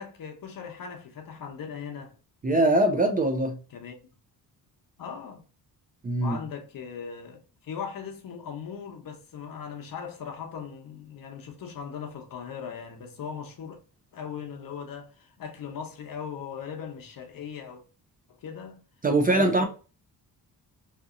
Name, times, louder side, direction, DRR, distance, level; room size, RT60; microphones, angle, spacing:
voice 1, 0.0-2.1 3.7-4.0 5.0-5.4 6.2-13.8 14.1-17.8 18.3-18.8 19.3-19.7, left 7 dB, 60° left, 0.8 m, -39 dB
voice 2, 2.4-3.6 6.0-6.4 19.0-19.6, right 2 dB, 25° right, 0.3 m, -22 dB
2.8 x 2.6 x 2.5 m
wide cardioid pair, 130°, 38 cm